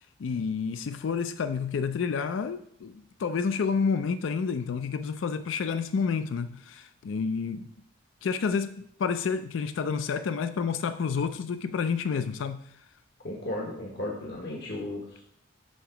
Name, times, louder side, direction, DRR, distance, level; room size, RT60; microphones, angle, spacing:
voice 1, 0.2-7.7 8.2-12.6, left 5 dB, 75° left, 0.4 m, -29 dB
voice 2, 13.2-15.2, left 1 dB, 60° left, 1.1 m, -35 dB
7.3 x 3.7 x 5.8 m
head